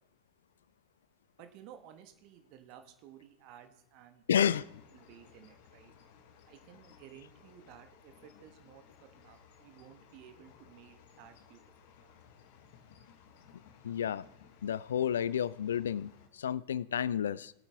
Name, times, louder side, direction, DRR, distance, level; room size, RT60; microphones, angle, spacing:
voice 1, 1.4-4.2 4.5-4.6 4.9-5.9 6.4-8.8 9.1-11.6 12.0-12.1, right 10 dB, 45° right, 8 dB, 1.4 m, -55 dB
voice 2, 4.3-4.7 13.8-14.3 14.6-17.5, left 9 dB, 65° left, 20 dB, 0.3 m, -31 dB
sound 1, 4.4-16.3, left 7 dB, 50° left, 1.3 m, -59 dB
21.5 x 8.7 x 3.5 m, 0.80 s
figure-of-eight pair, 90°, 0 cm